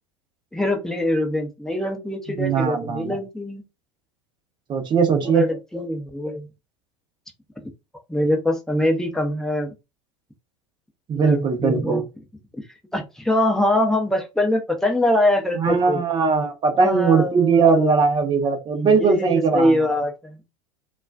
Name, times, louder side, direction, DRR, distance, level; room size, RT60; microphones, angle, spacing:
voice 1, 0.5-3.6 5.2-6.5 8.1-9.7 11.1-12.0 12.9-16.0 16.7-18.0 18.7-20.4, left 1 dB, 5° left, 0.7 m, -23 dB
voice 2, 2.4-3.2 4.7-5.4 11.1-12.0 15.6-20.0, right 5 dB, 30° right, 0.8 m, -20 dB
2.3 x 2.3 x 2.3 m
hypercardioid pair, 85°, 16 cm